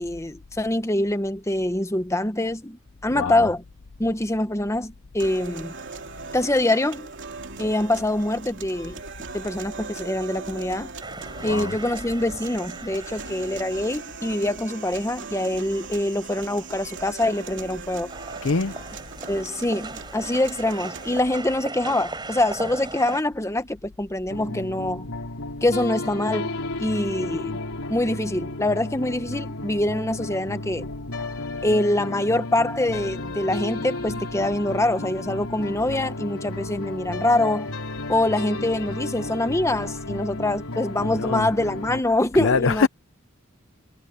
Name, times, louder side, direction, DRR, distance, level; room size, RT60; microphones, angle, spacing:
voice 1, 0.0-3.6 4.0-5.7 6.3-7.1 7.6-8.9 9.3-10.9 11.4-18.1 19.3-25.1 25.6-26.5 26.8-27.6 27.9-30.9 31.6-37.7 38.1-42.9, left 1 dB, 15° left, 1.0 m, -24 dB
voice 2, 3.1-3.5 11.4-11.7 18.4-18.8 41.0-41.5 42.3-42.9, left 4 dB, 60° left, 0.7 m, -24 dB
sound 1, 5.2-21.2, right 4 dB, 55° right, 3.0 m, -39 dB
Streets of Riga Latvia. People passing by, 11.0-14.4 14.9-15.0 15.3-17.8 18.1-23.2, right 3 dB, 20° right, 5.5 m, -39 dB
sound 2, 24.3-42.0, left 2 dB, 80° left, 3.5 m, -33 dB
head